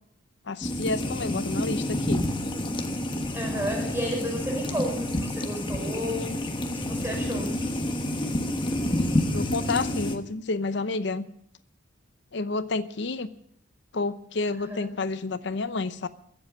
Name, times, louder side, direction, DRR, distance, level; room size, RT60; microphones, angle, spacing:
voice 1, 0.5-2.2 9.3-11.3 12.3-13.3 13.9-16.1, left 3 dB, 60° left, 13 dB, 0.7 m, -30 dB
sound 1, 0.6-10.2, left 1 dB, 25° left, 1.3 m, -29 dB
voice 2, 3.3-7.5 14.6-14.8, equal, 10° right, 1 dB, 5.7 m, -32 dB
22.5 x 7.7 x 7.4 m, 0.69 s
head